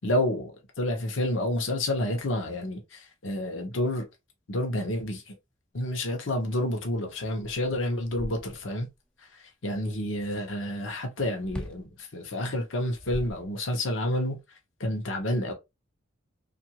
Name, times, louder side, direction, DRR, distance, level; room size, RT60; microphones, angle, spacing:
voice 1, 0.0-0.5 0.8-4.0 4.5-5.3 5.7-8.9 9.6-14.4 14.8-15.5, left 1 dB, 70° left, 0.8 m, -29 dB
sound 1, 6.9-7.0 7.4-8.9 11.4-11.9 12.7-13.9, equal, 5° left, 0.3 m, -40 dB
2.8 x 2.5 x 2.8 m
head